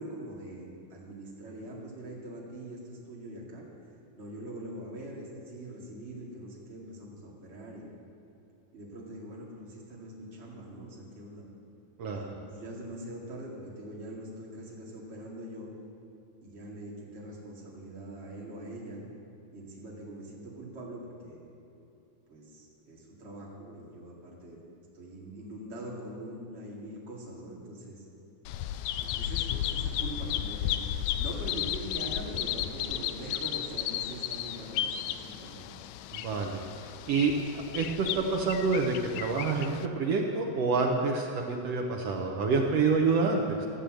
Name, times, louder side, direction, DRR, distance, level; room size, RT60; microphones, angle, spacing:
voice 1, 0.0-3.6 4.2-7.9 8.7-11.5 12.1-15.7 16.4-19.0 19.5-21.4 22.3-24.7 24.9-28.0 29.0-30.8 31.2-35.7, right 1 dB, 25° right, -4 dB, 2.0 m, -43 dB
voice 2, 12.0-12.3 36.1-36.6 37.1-37.3 37.7-43.7, right 4 dB, 75° right, 1 dB, 1.5 m, -27 dB
Bird vocalization bird call bird song, 28.5-39.9, left 11 dB, 85° left, 1.8 m, -34 dB
13.5 x 8.4 x 7.7 m, 2.7 s
omnidirectional pair, 4.0 m